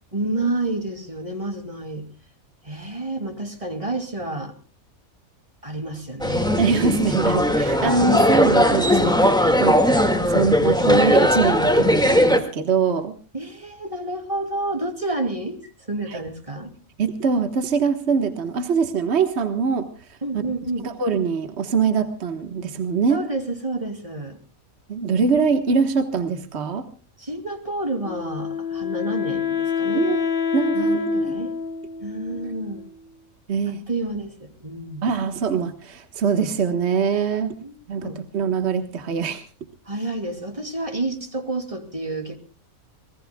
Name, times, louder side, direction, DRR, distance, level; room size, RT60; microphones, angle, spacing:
voice 1, 0.1-2.1 2.6-4.5 5.6-6.5 13.3-16.7 20.2-20.9 23.1-24.4 27.2-30.1 30.7-31.5 32.0-32.9 33.7-35.0 37.6-38.2 39.9-42.4, right 2 dB, 25° right, 5 dB, 2.7 m, -29 dB
sound 1, 6.2-12.4, left 1 dB, 5° left, 1.9 m, -18 dB
voice 2, 6.6-13.2 16.1-16.2 17.0-20.2 20.8-23.2 24.9-26.9 29.9-30.2 30.5-31.4 33.5-33.8 35.0-37.5 37.9-39.4, right 5 dB, 50° right, 7 dB, 1.6 m, -23 dB
Wind instrument woodwind instrument, 28.0-33.1, left 7 dB, 45° left, 2.4 m, -27 dB
26.0 x 20.0 x 2.3 m, 0.35 s
omnidirectional pair, 1.5 m